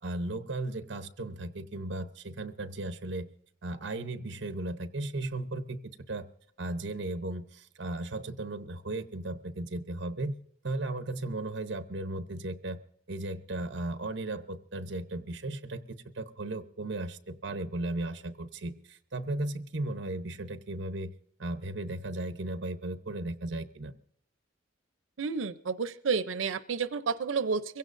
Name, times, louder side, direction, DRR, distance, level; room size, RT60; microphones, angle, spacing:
voice 1, 0.0-3.3 3.6-5.8 6.1-6.3 6.6-10.3 10.6-12.8 13.1-21.1 21.4-23.9, right 2 dB, 60° right, 9 dB, 0.9 m, -36 dB
voice 2, 25.2-27.8, right 5 dB, 85° right, 13 dB, 0.6 m, -31 dB
22.5 x 16.5 x 2.6 m, 0.66 s
head